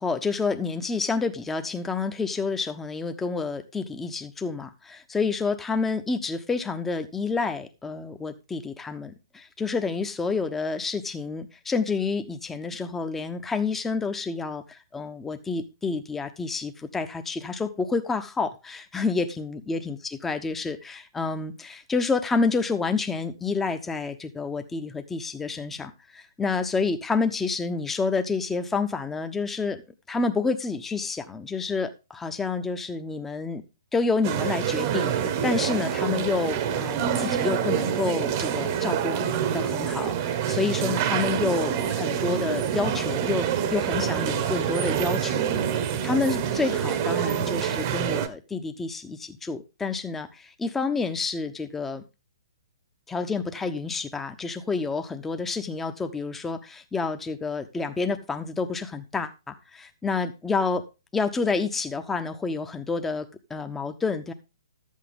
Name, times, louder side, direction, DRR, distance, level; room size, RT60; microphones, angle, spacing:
voice 1, 0.0-29.8 30.1-33.6 33.9-39.2 39.5-52.0 53.1-60.8 61.1-64.3, left 4 dB, 10° left, 8 dB, 1.1 m, -29 dB
sound 1, 34.2-48.3, right 9 dB, 40° right, 1.2 m, -26 dB
12.0 x 8.5 x 3.6 m, 0.28 s
hypercardioid pair, 130°, 2 cm